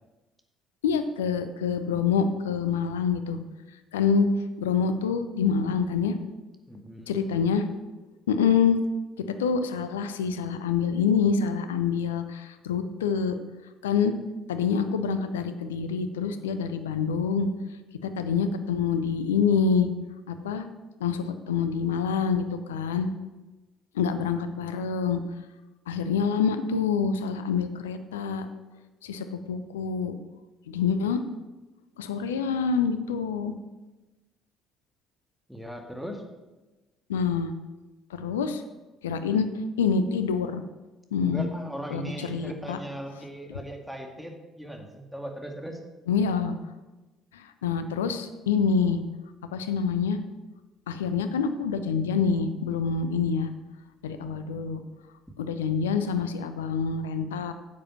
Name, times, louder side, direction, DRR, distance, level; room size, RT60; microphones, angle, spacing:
voice 1, 0.8-3.4 3.9-4.3 4.6-6.2 7.1-7.7 8.3-8.8 9.4-13.4 13.8-14.1 14.5-17.5 18.0-19.9 20.3-20.7 21.0-23.1 23.9-25.2 25.9-28.5 29.0-30.1 30.7-31.2 32.0-33.5 37.1-37.5 38.1-38.6 39.0-39.5 39.8-40.6 41.1-41.5 41.9-42.8 46.1-46.5 47.3-49.0 49.5-50.2 50.9-53.5 54.0-54.8 55.4-57.5, left 6 dB, 80° left, 10 dB, 0.7 m, -26 dB
voice 2, 6.7-7.3 35.5-36.2 41.2-45.8, right 1 dB, ahead, 3 dB, 2.1 m, -38 dB
9.5 x 7.5 x 5.9 m, 1.1 s
figure-of-eight pair, 50°, 0 cm